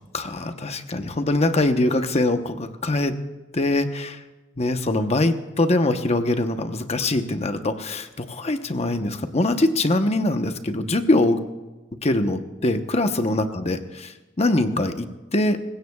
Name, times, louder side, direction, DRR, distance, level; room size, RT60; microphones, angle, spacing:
voice 1, 0.0-3.2 3.5-4.2 4.6-11.4 12.0-13.8 14.4-15.6, left 2 dB, 35° left, 8 dB, 0.9 m, -23 dB
26.5 x 16.0 x 2.3 m, 1.2 s
head